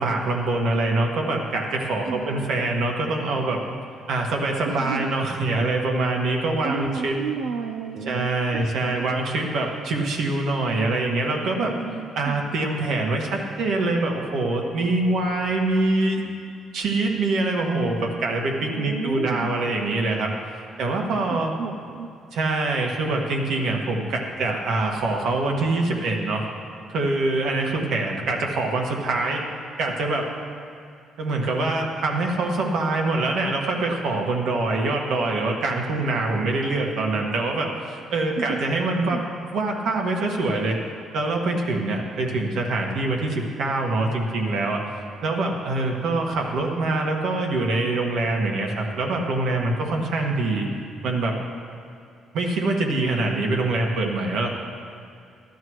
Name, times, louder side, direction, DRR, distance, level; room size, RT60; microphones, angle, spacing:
voice 1, 0.0-3.6 4.1-7.2 8.1-11.7 12.2-16.2 16.7-20.3 20.8-21.5 22.3-26.5 26.9-29.4 29.8-30.2 31.2-39.2 39.5-40.8 41.1-44.8 45.2-50.7 51.0-51.4 52.3-54.5, right 2 dB, 70° right, 1 dB, 1.7 m, -24 dB
voice 2, 2.1-2.5 4.6-5.1 6.6-8.8 11.7-12.4 18.7-19.5 21.3-22.1 38.4-38.6 39.1-39.3, right 5 dB, 85° right, 4 dB, 0.6 m, -32 dB
15.5 x 12.0 x 3.2 m, 2.4 s
cardioid pair, 125°, 0 cm